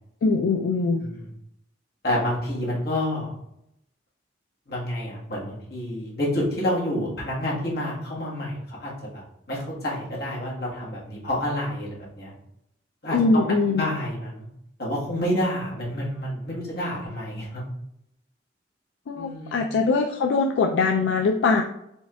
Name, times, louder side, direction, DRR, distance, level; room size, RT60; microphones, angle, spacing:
voice 1, 0.2-1.1 13.1-13.9 19.1-21.6, left 4 dB, 80° left, 3 dB, 0.3 m, -22 dB
voice 2, 1.0-1.3 2.0-3.3 4.7-12.3 13.0-13.4 13.7-14.5 14.8-17.6 19.1-19.6, left 1 dB, 55° left, -5 dB, 1.4 m, -29 dB
4.4 x 3.5 x 2.2 m, 0.78 s
head